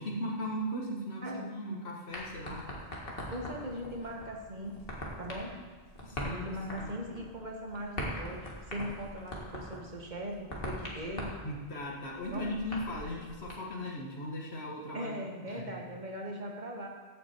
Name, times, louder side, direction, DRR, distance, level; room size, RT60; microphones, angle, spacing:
voice 1, 0.0-2.7 6.0-6.5 6.8-7.0 11.4-15.2 15.5-15.7, equal, 90° left, -2 dB, 1.8 m, -38 dB
sound 1, 2.1-13.5, equal, 65° left, 2.2 m, -42 dB
voice 2, 3.3-4.8 5.2-5.5 6.2-11.3 12.3-12.5 14.9-16.9, equal, 45° right, 0 dB, 1.7 m, -39 dB
15.0 x 6.2 x 4.6 m, 1.5 s
omnidirectional pair, 1.1 m